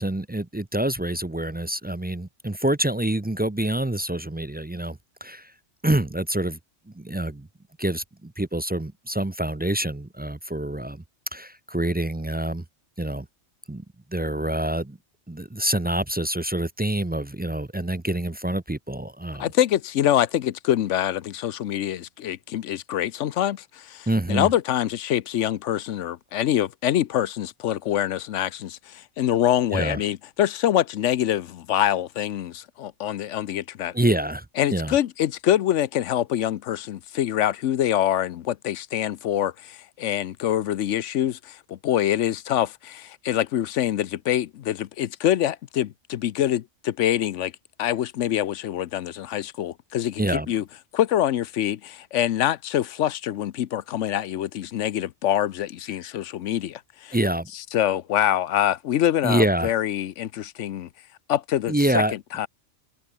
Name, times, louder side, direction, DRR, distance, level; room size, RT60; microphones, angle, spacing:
voice 1, 0.0-5.5 5.8-6.6 6.9-7.5 7.8-11.0 11.3-12.6 13.0-13.3 13.7-13.8 14.1-15.0 15.3-19.5 24.1-24.5 29.7-30.0 33.9-34.5 34.7-35.0 50.2-50.5 57.1-57.5 59.2-59.7 61.7-62.1, right 1 dB, 15° right, 0.3 m, -26 dB
voice 2, 19.4-33.9 34.6-47.5 47.8-50.6 50.9-57.1 57.5-60.9 61.3-62.0 62.3-62.5, left 11 dB, 80° left, 1.0 m, -25 dB
open air
omnidirectional pair, 1.2 m